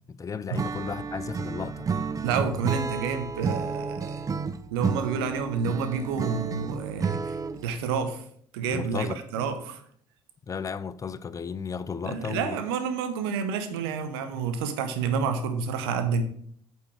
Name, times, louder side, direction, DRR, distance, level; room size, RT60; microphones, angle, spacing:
voice 1, 0.2-1.9 8.7-9.2 10.5-12.6, left 6 dB, 25° left, 0.5 m, -34 dB
Acoustic guitar / Strum, 0.5-7.7, right 5 dB, 25° right, 0.5 m, -31 dB
voice 2, 2.2-4.3 4.7-8.2 8.5-9.8 12.0-16.2, right 6 dB, 70° right, 0.9 m, -29 dB
8.4 x 4.6 x 4.7 m
figure-of-eight pair, 55°, 13 cm